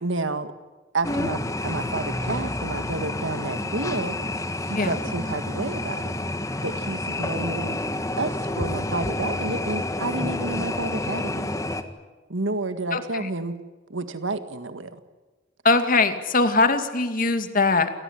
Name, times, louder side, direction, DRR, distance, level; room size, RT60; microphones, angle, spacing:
voice 1, 0.0-0.5 0.9-4.2 4.6-6.1 6.6-7.8 8.2-11.6 12.3-13.6 13.9-15.0, right 2 dB, 85° right, 10 dB, 1.8 m, -30 dB
sound 1, 1.0-11.8, left 1 dB, 15° left, 1.7 m, -29 dB
voice 2, 12.9-13.3 15.6-17.9, left 3 dB, 45° left, 8 dB, 2.4 m, -21 dB
28.5 x 18.5 x 9.9 m, 1.2 s
head